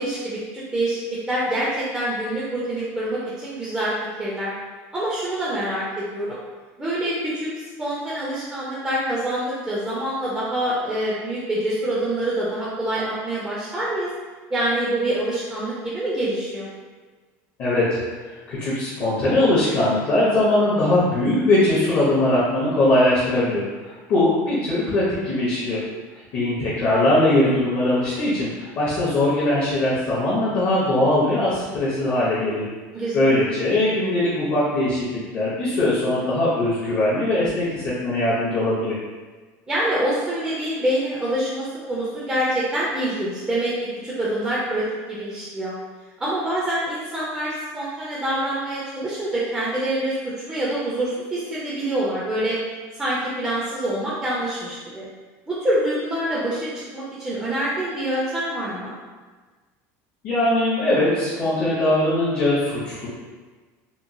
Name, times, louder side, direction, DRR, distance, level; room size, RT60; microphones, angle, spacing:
voice 1, 0.0-3.9 4.2-4.5 4.9-6.4 6.8-7.5 7.8-14.1 14.5-16.7 32.9-33.4 39.7-43.7 44.0-45.7 46.2-50.1 50.5-52.6 53.0-55.1 55.5-58.9, right 1 dB, 10° right, -8 dB, 0.4 m, -26 dB
voice 2, 17.6-25.8 26.3-32.6 33.1-38.9 60.2-63.1, left 1 dB, 35° left, -8 dB, 0.6 m, -21 dB
2.9 x 2.1 x 2.5 m, 1.4 s
cardioid pair, 175°, 7 cm